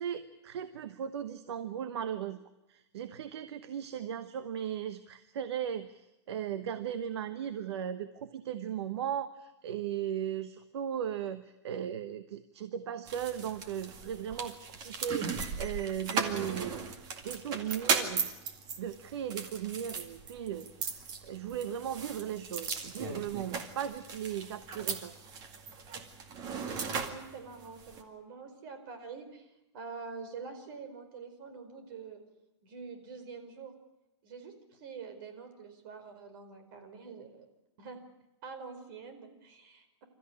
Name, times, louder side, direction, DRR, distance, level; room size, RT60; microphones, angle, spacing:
voice 1, 0.0-2.4 2.7-16.9 17.2-18.3 18.8-25.1, right 9 dB, 70° right, 11 dB, 1.2 m, -37 dB
sound 1, 13.1-28.0, right 5 dB, 30° right, 2.1 m, -37 dB
voice 2, 26.9-32.2 32.6-33.7 34.2-37.5 37.8-38.0 38.4-40.0, right 5 dB, 50° right, 7 dB, 4.7 m, -46 dB
28.5 x 14.0 x 10.0 m, 0.96 s
hypercardioid pair, 155°, 15 cm